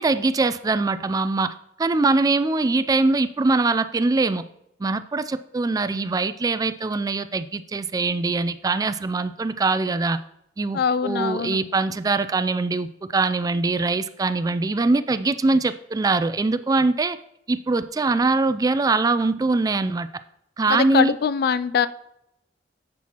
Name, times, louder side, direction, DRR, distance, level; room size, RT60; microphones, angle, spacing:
voice 1, 0.0-1.5 1.8-4.4 4.8-10.2 10.6-17.2 17.5-20.1 20.6-21.1, right 3 dB, 20° right, 13 dB, 0.3 m, -22 dB
voice 2, 10.7-11.6 20.7-21.9, left 6 dB, 60° left, 15 dB, 0.3 m, -22 dB
10.0 x 7.5 x 2.9 m, 0.82 s
head